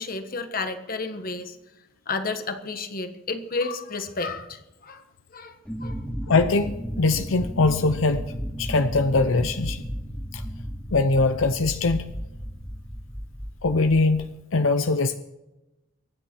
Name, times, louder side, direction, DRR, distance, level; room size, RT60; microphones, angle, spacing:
voice 1, 0.0-1.6 2.1-5.0 5.3-5.5 5.8-6.0, left 3 dB, 45° left, 8 dB, 1.5 m, -31 dB
sound 1, 5.7-14.2, equal, 5° left, 2.5 m, -34 dB
voice 2, 6.3-8.2 8.6-9.8 10.3-10.4 10.9-12.1 13.6-15.2, left 3 dB, 80° left, 9 dB, 0.8 m, -22 dB
23.5 x 10.0 x 4.6 m, 0.98 s
head